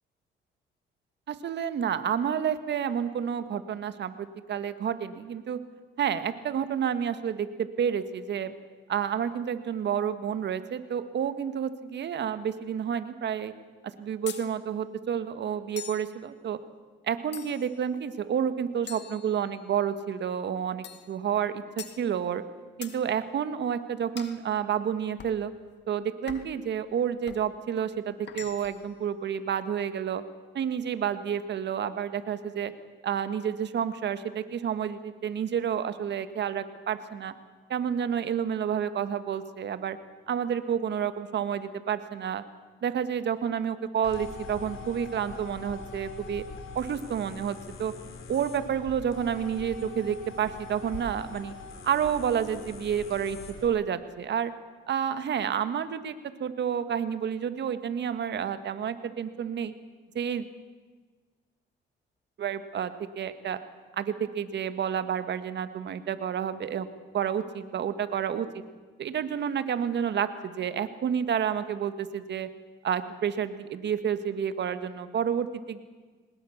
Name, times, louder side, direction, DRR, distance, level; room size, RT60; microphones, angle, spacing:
voice 1, 1.3-5.6 6.0-8.5 8.9-13.5 13.8-16.6 17.0-22.4 22.8-25.5 25.9-30.2 30.5-32.7 33.0-37.3 37.7-40.0 40.3-42.4 42.8-46.4 46.8-47.9 48.3-51.5 51.8-54.5 54.9-56.1 56.4-59.7 60.2-60.5 62.4-63.6 64.0-66.9 67.1-68.6 69.0-72.5 72.8-75.8, right 8 dB, 60° right, 11 dB, 1.7 m, -30 dB
sound 1, 14.3-14.5 15.8-16.1 17.3-17.8 18.9-19.8 20.8-21.1 21.8-22.0 22.8-23.0 24.2-24.4 25.2-25.4 26.3-26.6 27.3-27.5 28.3-28.9, left 8 dB, 60° left, 1.7 m, -43 dB
sound 2, 44.0-53.7, left 4 dB, 80° left, 3.7 m, -43 dB
22.5 x 20.0 x 7.3 m, 1.4 s
cardioid pair, 90°, 20 cm